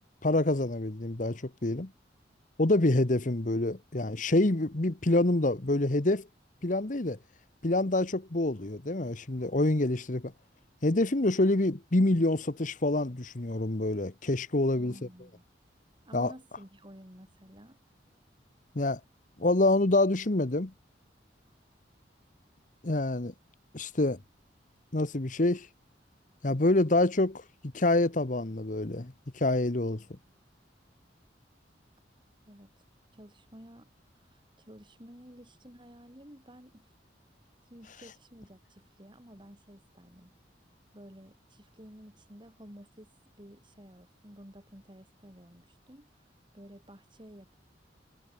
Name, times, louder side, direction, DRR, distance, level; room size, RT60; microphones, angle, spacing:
voice 1, 0.2-1.9 2.6-6.3 6.6-7.2 7.6-10.3 10.8-15.0 16.1-16.3 18.7-19.0 19.4-20.7 22.8-23.3 23.7-24.2 24.9-25.7 26.4-27.4 27.7-30.0, left 2 dB, 45° left, 1.2 m, -26 dB
voice 2, 14.8-15.4 16.0-17.8 30.0-30.1 32.5-32.7 33.1-33.9 34.2-36.9 37.7-40.3 40.9-46.2 46.5-47.5, equal, 25° right, 5.6 m, -52 dB
head